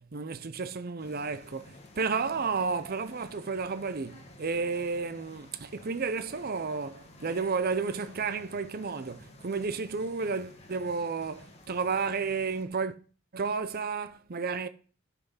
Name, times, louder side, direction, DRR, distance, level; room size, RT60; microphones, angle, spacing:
voice 1, 0.0-12.9 13.3-14.7, right 5 dB, 50° right, 0.7 m, -32 dB
sound 1, 1.0-12.7, left 1 dB, 35° left, 1.8 m, -53 dB
11.0 x 5.9 x 5.6 m
head